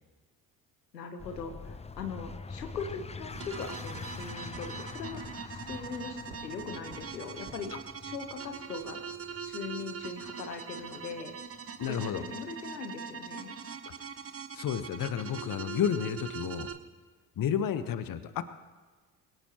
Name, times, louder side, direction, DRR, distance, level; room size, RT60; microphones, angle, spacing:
voice 1, 0.9-7.7 8.0-9.0 9.4-11.3 11.9-13.5, left 5 dB, 90° left, 6 dB, 1.2 m, -40 dB
sound 1, 1.2-12.3, left 4 dB, 15° left, 0.7 m, -45 dB
sound 2, 2.3-8.4, right 3 dB, 65° right, 4.4 m, -54 dB
sound 3, 3.4-16.7, right 6 dB, 30° right, 1.2 m, -42 dB
voice 2, 11.8-12.2 14.5-16.7 17.4-18.4, left 8 dB, 45° left, 12 dB, 1.1 m, -31 dB
22.5 x 18.0 x 3.0 m, 1.4 s
hypercardioid pair, 50°, 48 cm